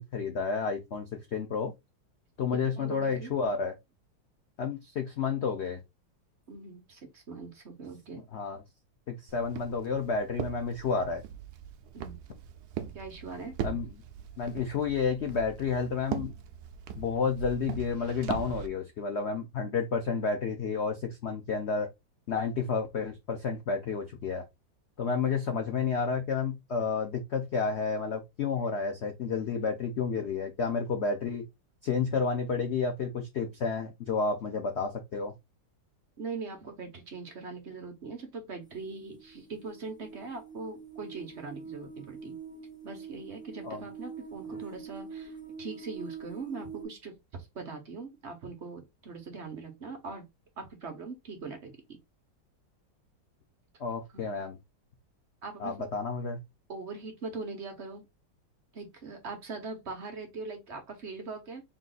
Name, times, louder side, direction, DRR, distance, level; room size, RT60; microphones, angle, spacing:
voice 1, 0.0-1.7 2.4-3.7 4.6-5.8 8.3-8.6 9.1-11.2 13.6-13.9 14.4-16.3 17.0-21.9 22.3-24.4 25.0-31.4 31.8-35.3 43.6-43.8 53.8-54.6 55.6-56.4, left 5 dB, 75° left, 0.6 m, -31 dB
voice 2, 2.6-3.3 6.5-8.2 11.9-12.2 12.9-13.6 36.2-42.4 42.8-50.3 50.6-52.0 54.1-54.2 55.4-55.9 56.7-58.1 58.7-61.6, right 4 dB, 45° right, 1.1 m, -41 dB
Walk footsteps, 9.3-18.7, right 8 dB, 70° right, 1.0 m, -40 dB
sound 1, 38.8-46.8, right 5 dB, 5° right, 1.0 m, -44 dB
3.8 x 2.5 x 3.9 m
omnidirectional pair, 2.0 m